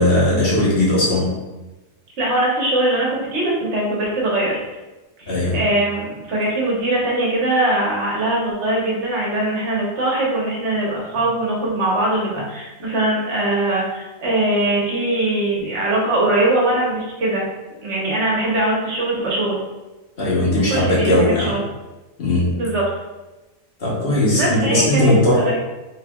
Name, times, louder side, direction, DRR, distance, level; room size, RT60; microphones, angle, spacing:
voice 1, 0.0-1.4 5.3-5.6 20.2-21.5 22.2-22.6 23.8-25.5, left 1 dB, 45° left, -6 dB, 1.3 m, -18 dB
voice 2, 2.2-4.6 5.2-17.5 17.8-19.6 20.7-21.6 22.5-22.8 24.3-25.6, right 1 dB, 60° right, -4 dB, 1.3 m, -21 dB
4.4 x 3.2 x 2.3 m, 1.1 s
omnidirectional pair, 1.4 m